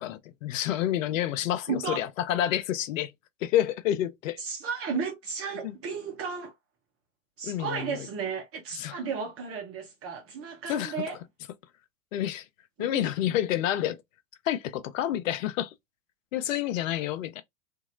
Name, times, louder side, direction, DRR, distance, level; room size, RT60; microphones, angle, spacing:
voice 1, 0.0-3.1 3.4-4.4 5.6-5.7 7.4-8.1 8.7-9.0 10.7-10.9 12.1-12.4 12.8-14.0 14.5-15.7 16.3-17.4, left 12 dB, 70° left, 0.6 m, -29 dB
voice 2, 1.7-2.0 4.4-6.5 7.4-11.2 12.8-13.1, right 5 dB, 35° right, 1.0 m, -34 dB
2.8 x 2.7 x 2.5 m
hypercardioid pair, 95°, 41 cm